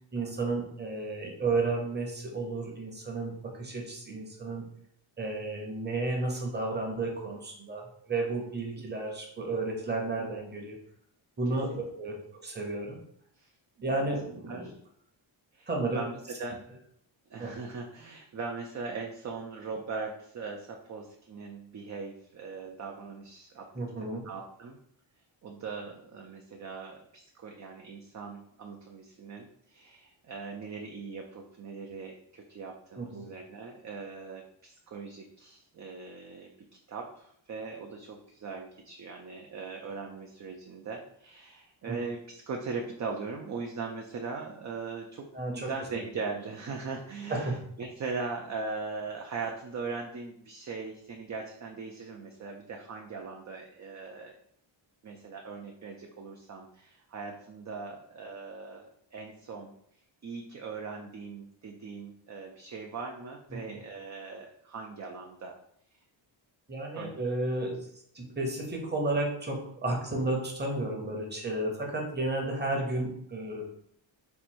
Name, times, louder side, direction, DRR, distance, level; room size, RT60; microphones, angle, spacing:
voice 1, 0.1-4.6 5.2-10.8 11.4-13.0 13.8-14.7 15.7-16.0 17.4-17.5 23.7-24.2 33.0-33.3 41.9-42.0 45.3-45.7 47.3-47.6 63.5-63.8 66.7-67.9 68.1-73.6, right 2 dB, 20° right, 0 dB, 0.9 m, -32 dB
voice 2, 17.3-23.7 24.0-24.8 25.4-36.5 36.9-54.4 55.0-59.7 60.2-65.6 66.9-67.2, right 4 dB, 40° right, 1 dB, 0.4 m, -40 dB
4.5 x 2.6 x 4.3 m, 0.68 s
wide cardioid pair, 165°, 47 cm